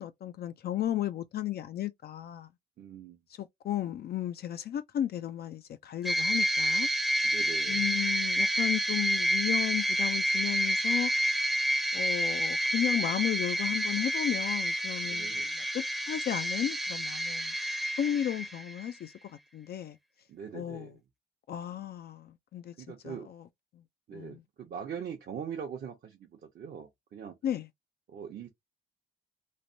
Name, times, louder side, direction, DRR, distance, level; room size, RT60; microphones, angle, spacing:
voice 1, 0.0-2.5 3.4-6.9 7.7-11.1 11.4-11.5 11.9-17.5 18.0-20.0 20.5-20.9 21.5-22.7 23.0-23.5 23.7-23.8 24.1-24.4 27.4-27.7, left 11 dB, 50° left, 0.4 m, -34 dB
voice 2, 2.8-3.2 7.2-7.8 15.0-15.5 20.3-21.0 22.8-23.3 24.1-27.3 28.1-28.5, right 7 dB, 55° right, 0.7 m, -42 dB
sound 1, 6.0-18.9, equal, ahead, 0.6 m, -29 dB
3.1 x 2.1 x 2.6 m
cardioid pair, 90°, 20 cm